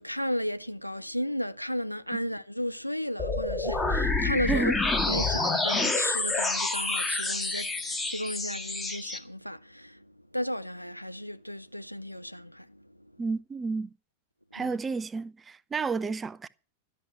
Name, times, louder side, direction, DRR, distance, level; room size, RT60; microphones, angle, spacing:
voice 1, 0.0-4.7 5.1-13.1 14.5-14.7, equal, 90° left, 0.6 m, -34 dB
sound 1, 3.2-9.2, left 3 dB, 10° left, 1.6 m, -28 dB
voice 2, 13.2-13.9 14.5-16.5, right 4 dB, 15° right, 0.6 m, -31 dB
12.5 x 6.4 x 8.9 m
figure-of-eight pair, 90°, 0 cm